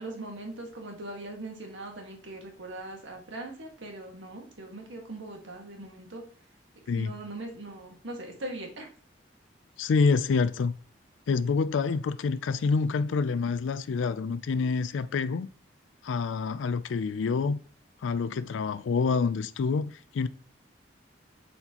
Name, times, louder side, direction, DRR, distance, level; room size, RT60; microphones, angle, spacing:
voice 1, 0.0-6.2 6.9-8.9, right 2 dB, 85° right, 1.6 m, -40 dB
voice 2, 9.8-10.7 11.3-15.5 16.0-17.6 18.0-20.3, left 4 dB, 90° left, 0.4 m, -27 dB
7.8 x 4.3 x 2.9 m
head